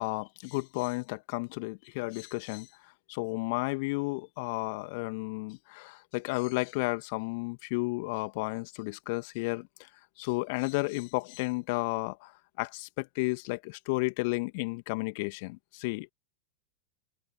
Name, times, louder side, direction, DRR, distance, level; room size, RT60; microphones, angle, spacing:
voice 1, 0.0-2.7 3.1-9.9 10.2-16.1, left 28 dB, 45° left, 2.5 m, -33 dB
open air
figure-of-eight pair, 90°, 0 cm